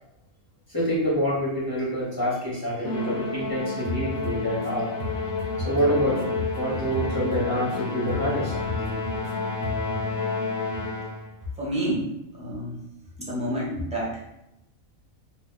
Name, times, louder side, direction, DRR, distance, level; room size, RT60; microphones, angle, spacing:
voice 1, 0.7-4.9 5.6-6.3 6.6-8.8, equal, 20° left, -7 dB, 0.7 m, -26 dB
Musical instrument, 2.8-11.3, left 3 dB, 55° left, 0.8 m, -30 dB
sound 1, 3.8-4.7 5.0-7.8 8.1-9.3 9.6-10.0, left 1 dB, 65° right, 0.7 m, -33 dB
voice 2, 11.6-12.1 12.4-12.8 13.2-14.3, right 1 dB, 10° right, -6 dB, 0.4 m, -29 dB
2.5 x 2.2 x 3.7 m, 0.87 s
omnidirectional pair, 1.5 m